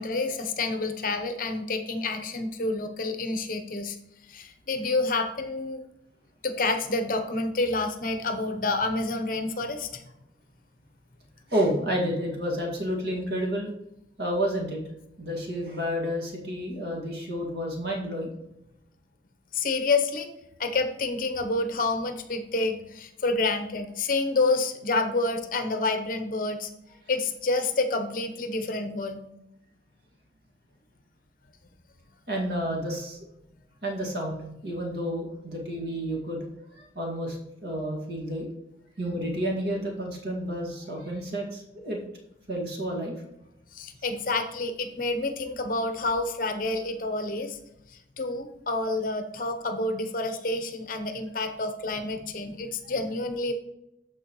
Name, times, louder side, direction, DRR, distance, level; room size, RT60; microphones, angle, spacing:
voice 1, 0.0-4.0 4.3-5.8 6.4-10.0 19.5-20.3 20.6-26.7 27.1-29.2 43.7-47.6 48.2-53.5, left 3 dB, 50° left, 7 dB, 0.8 m, -28 dB
voice 2, 11.5-13.7 14.2-14.8 15.2-18.3 32.3-33.2 33.8-36.4 36.8-38.5 39.0-42.0 42.5-43.1 52.8-52.9, equal, 60° right, 0 dB, 2.1 m, -30 dB
13.5 x 4.6 x 3.1 m, 0.85 s
head